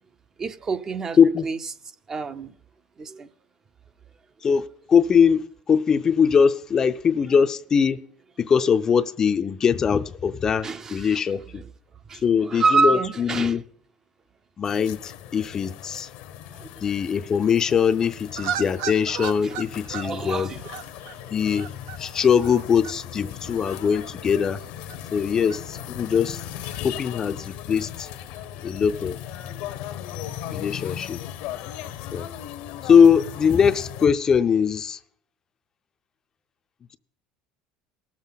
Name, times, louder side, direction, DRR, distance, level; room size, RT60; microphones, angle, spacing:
voice 1, 0.4-1.2 1.4-1.6 2.1-2.5 3.0-3.3 10.6-11.2 12.1-13.6 16.5-16.7 19.4-19.5 20.0-20.6, right 4 dB, 25° right, 0.5 m, -26 dB
voice 2, 4.4-8.0 8.4-11.6 12.2-13.6 14.6-16.1 16.8-20.5 21.3-21.7 22.0-24.6 25.1-26.4 26.8-28.1 28.6-29.2 30.5-31.2 32.1-32.3 32.8-35.0, left 7 dB, 30° left, 0.4 m, -21 dB
sound 1, 14.6-34.1, left 11 dB, 70° left, 0.7 m, -38 dB
sound 2, 18.3-29.8, right 9 dB, 85° right, 0.6 m, -39 dB
18.5 x 7.3 x 4.0 m
cardioid pair, 130°, 2 cm